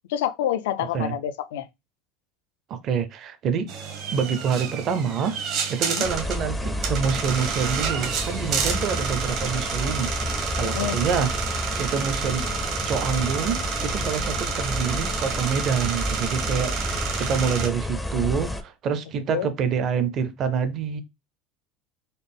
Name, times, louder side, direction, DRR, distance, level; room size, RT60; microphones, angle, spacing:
voice 1, 0.1-1.7 6.0-6.1 10.6-11.0 19.3-19.5, left 11 dB, 85° left, 0.4 m, -27 dB
voice 2, 0.8-1.1 2.7-3.7 4.1-5.4 5.7-12.5 12.8-21.0, right 6 dB, 45° right, 0.6 m, -27 dB
sound 1, 3.7-17.7, right 6 dB, 60° right, 1.0 m, -30 dB
sound 2, 6.0-18.6, left 1 dB, 5° left, 0.4 m, -30 dB
4.0 x 2.0 x 3.4 m
supercardioid pair, 120°, 0 cm